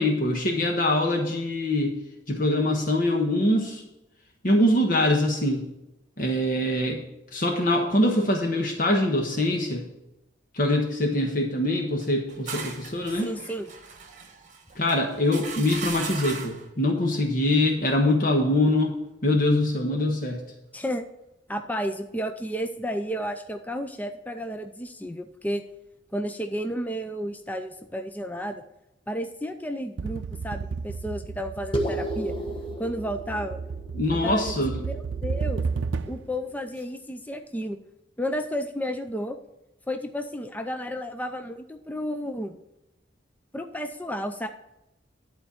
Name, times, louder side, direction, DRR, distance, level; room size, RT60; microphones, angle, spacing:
voice 1, 0.0-2.0 2.3-3.8 4.4-5.7 6.2-7.0 7.3-9.8 10.5-13.3 14.7-20.4 33.9-34.8, left 1 dB, 50° left, 1 dB, 1.3 m, -23 dB
sound 1, 12.0-16.7, right 5 dB, 40° right, 1.2 m, -38 dB
voice 2, 13.1-13.7 20.7-21.0 21.5-25.6 26.1-28.6 29.1-32.3 32.8-33.6 34.1-34.5 34.8-35.6 36.1-37.8 38.2-39.4 39.9-42.5 43.5-44.5, equal, 10° left, 6 dB, 0.5 m, -32 dB
sound 2, 30.0-36.4, right 5 dB, 80° right, 0.5 m, -33 dB
sound 3, 31.7-36.5, equal, 30° left, 1.2 m, -35 dB
11.0 x 4.4 x 7.1 m, 0.90 s
head